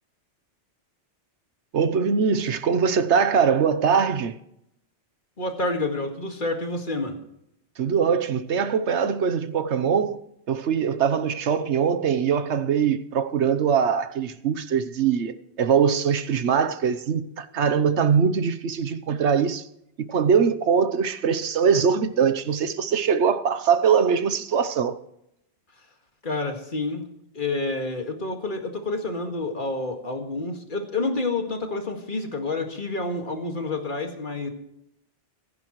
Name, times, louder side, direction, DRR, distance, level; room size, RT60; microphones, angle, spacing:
voice 1, 1.7-4.4 7.8-10.2 10.5-19.7 20.0-25.0, right 6 dB, 80° right, 1.2 m, -22 dB
voice 2, 5.4-7.2 26.2-27.1 27.3-34.5, left 2 dB, 45° left, 2.1 m, -28 dB
24.0 x 11.0 x 3.1 m
omnidirectional pair, 1.1 m